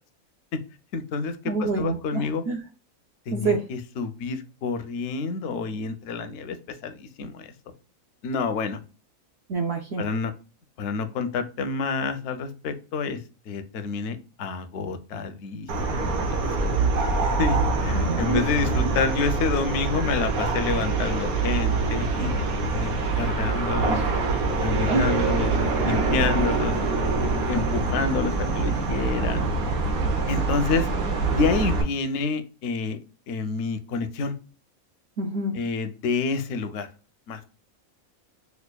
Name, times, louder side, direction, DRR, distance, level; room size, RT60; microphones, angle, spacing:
voice 1, 0.9-2.4 3.3-6.6 6.8-7.5 8.2-8.8 10.0-10.3 10.8-13.2 13.5-16.2 17.4-22.3 22.7-24.0 24.6-25.6 25.8-26.8 27.5-29.4 30.3-30.9 31.3-33.0 33.3-34.4 35.6-36.9 37.3-37.4, left 4 dB, 65° left, 8 dB, 0.7 m, -28 dB
voice 2, 1.4-2.6 3.3-3.6 9.5-10.1 17.9-18.4 18.8-18.9 23.9-24.1 24.9-25.2 35.2-35.6, right 3 dB, 65° right, 2 dB, 0.6 m, -27 dB
sound 1, 15.7-31.8, right 3 dB, 80° right, 1.2 m, -25 dB
5.4 x 2.3 x 2.2 m, 0.35 s
omnidirectional pair, 1.5 m